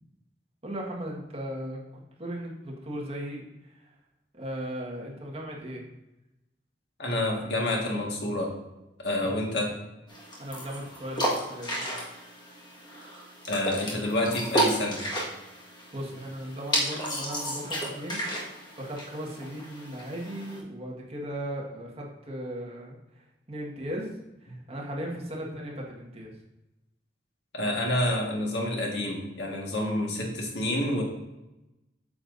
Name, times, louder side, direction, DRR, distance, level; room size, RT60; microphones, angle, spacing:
voice 1, 0.6-1.8 2.2-3.4 4.3-5.8 10.4-11.8 15.9-23.0 23.5-24.1 24.4-26.3, equal, 35° right, -2 dB, 1.6 m, -37 dB
voice 2, 7.0-8.6 9.0-9.8 13.5-15.0 27.5-31.0, left 1 dB, 70° left, -1 dB, 1.8 m, -28 dB
sound 1, 10.1-20.6, equal, 25° left, 1.6 m, -33 dB
8.6 x 7.0 x 2.6 m, 0.95 s
head